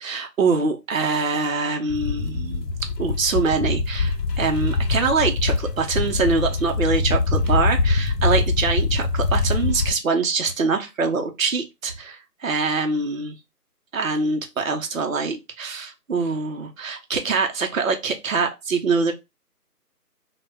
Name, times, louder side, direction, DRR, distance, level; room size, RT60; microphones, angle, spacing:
voice 1, 0.0-2.7 3.0-13.3 13.9-19.1, right 4 dB, 55° right, 0.5 m, -24 dB
sound 1, 1.9-9.9, left 3 dB, 85° left, 0.6 m, -23 dB
2.1 x 2.1 x 3.2 m
figure-of-eight pair, 175°, 49 cm